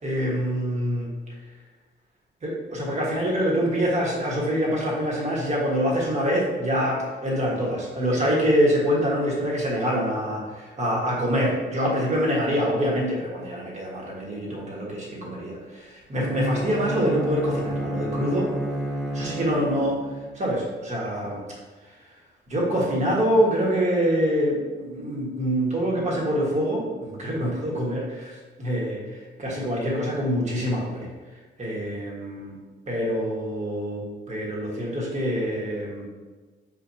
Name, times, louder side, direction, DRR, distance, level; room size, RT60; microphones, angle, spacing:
voice 1, 0.0-1.1 2.4-18.5 19.1-20.0 20.3-21.4 21.8-22.1 22.5-31.1 31.6-32.6 32.9-36.1, equal, 35° right, -4 dB, 1.3 m, -25 dB
Bowed string instrument, 16.2-20.4, right 1 dB, ahead, 0.5 m, -30 dB
5.9 x 2.5 x 2.6 m, 1.3 s
cardioid pair, 90°, 20 cm